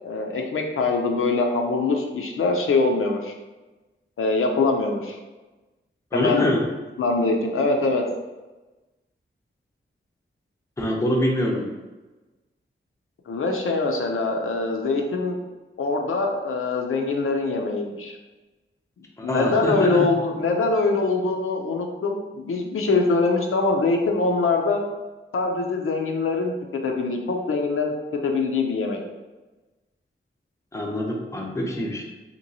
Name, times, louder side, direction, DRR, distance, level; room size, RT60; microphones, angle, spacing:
voice 1, 0.0-3.3 4.2-5.2 6.1-6.4 7.0-8.0 13.3-15.4 15.8-18.2 19.2-24.8 25.3-27.9 28.2-29.0, left 3 dB, 80° left, 2 dB, 0.4 m, -23 dB
voice 2, 6.1-6.7 10.8-11.7 19.2-20.2 30.7-32.1, left 1 dB, 15° left, 0 dB, 0.5 m, -24 dB
2.9 x 2.9 x 2.6 m, 1.2 s
wide cardioid pair, 115°, 21 cm